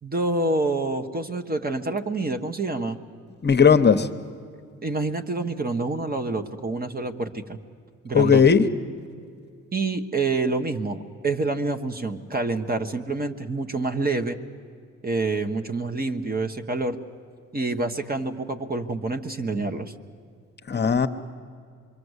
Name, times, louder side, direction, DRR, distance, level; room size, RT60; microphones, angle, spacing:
voice 1, 0.0-3.0 4.8-7.6 8.0-8.4 9.7-14.4 15.0-17.0 17.5-19.9, right 3 dB, 30° right, 7 dB, 1.5 m, -27 dB
voice 2, 3.4-4.1 8.1-8.6 20.7-21.1, left 6 dB, 35° left, 8 dB, 1.0 m, -17 dB
25.5 x 23.5 x 8.2 m, 2.2 s
cardioid pair, 90°, 30 cm